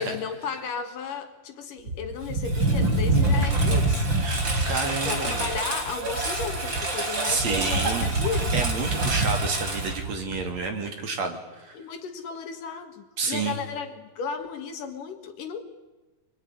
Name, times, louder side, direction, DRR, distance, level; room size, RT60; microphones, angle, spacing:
voice 1, 0.0-4.1 5.0-8.5 11.7-15.6, left 6 dB, 65° left, 7 dB, 3.1 m, -34 dB
Engine, 1.9-10.6, right 2 dB, 30° right, 4.2 m, -25 dB
voice 2, 4.2-5.5 7.3-8.1 8.5-11.8 13.2-13.6, right 4 dB, 50° right, 5 dB, 3.5 m, -30 dB
25.5 x 23.0 x 9.9 m, 1.1 s
omnidirectional pair, 4.3 m